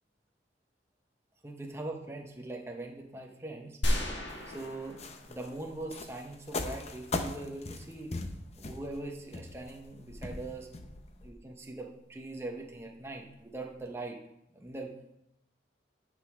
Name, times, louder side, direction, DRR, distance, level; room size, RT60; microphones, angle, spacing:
voice 1, 1.4-3.8 4.5-5.0 5.3-8.1 8.6-10.7 11.2-14.2 14.5-14.9, right 2 dB, 15° right, 1 dB, 0.9 m, -41 dB
sound 1, 3.8-5.8 6.1-6.2, equal, 80° left, 1.5 m, -33 dB
sound 2, 4.3-11.3, left 2 dB, 35° left, 0.7 m, -39 dB
9.9 x 5.3 x 5.0 m, 0.82 s
head